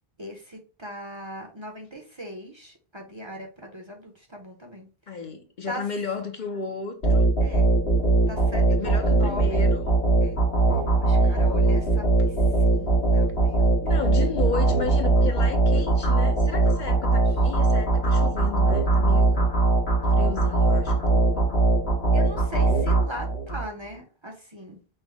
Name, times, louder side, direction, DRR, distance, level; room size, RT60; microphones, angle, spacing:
voice 1, 0.2-5.2 5.7-5.9 7.4-7.8 8.3-9.7 10.2-10.4 11.0-14.1 17.3-17.4 22.1-24.8, equal, 30° right, 0.7 m, -39 dB
voice 2, 5.1-7.3 8.6-9.9 11.2-11.5 13.8-19.5 20.0-21.4, left 5 dB, 55° left, 0.7 m, -34 dB
sound 1, 7.0-23.6, right 2 dB, 80° left, 1.5 m, -21 dB
5.6 x 2.0 x 3.4 m
omnidirectional pair, 1.0 m